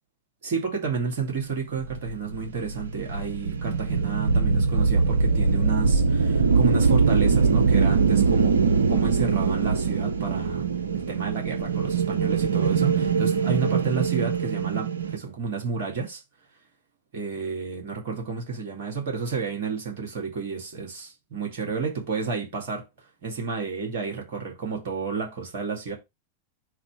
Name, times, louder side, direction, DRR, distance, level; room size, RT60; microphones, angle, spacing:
voice 1, 0.4-8.6 8.9-10.7 10.9-16.2 17.1-22.9 23.2-25.9, right 5 dB, 55° right, 2.1 m, -31 dB
sound 1, 1.8-15.2, right 5 dB, 70° right, 0.8 m, -22 dB
4.8 x 4.2 x 4.9 m
figure-of-eight pair, 90°, 0 cm